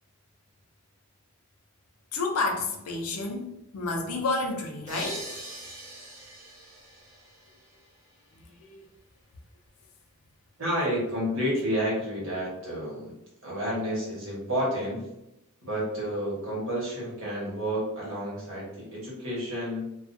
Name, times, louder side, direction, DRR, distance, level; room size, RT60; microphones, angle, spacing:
voice 1, 2.1-3.5 3.7-5.3 8.6-8.8, left 3 dB, 90° left, 2 dB, 0.5 m, -30 dB
sound 1, 4.9-8.4, right 1 dB, 35° right, 1.0 m, -42 dB
voice 2, 10.6-13.1 13.4-15.1 15.6-19.9, equal, 60° right, -5 dB, 1.1 m, -30 dB
2.4 x 2.3 x 2.5 m, 0.88 s
head